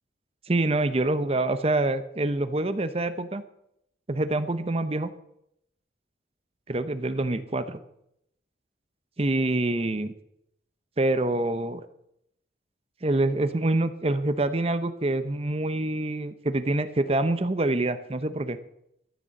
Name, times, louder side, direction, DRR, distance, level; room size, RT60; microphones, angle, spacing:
voice 1, 0.5-3.4 4.1-5.1 6.7-7.8 9.2-10.1 11.0-11.8 13.0-18.6, right 2 dB, 30° right, 12 dB, 0.7 m, -26 dB
13.5 x 6.8 x 7.7 m, 0.77 s
head